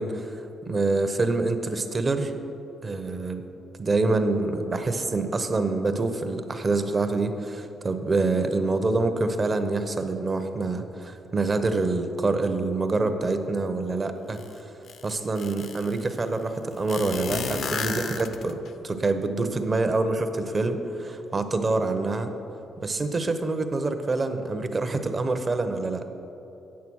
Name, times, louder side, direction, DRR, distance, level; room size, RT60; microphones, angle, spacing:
voice 1, 0.0-2.3 2.8-3.4 3.8-14.7 15.0-18.6 18.8-22.3 22.8-26.0, right 3 dB, 30° right, 8 dB, 0.8 m, -26 dB
sound 1, 14.4-14.5 14.9-16.0 16.9-18.7, left 5 dB, 65° left, 0.6 m, -32 dB
8.4 x 6.8 x 6.2 m, 2.9 s
cardioid pair, 90°, 0 cm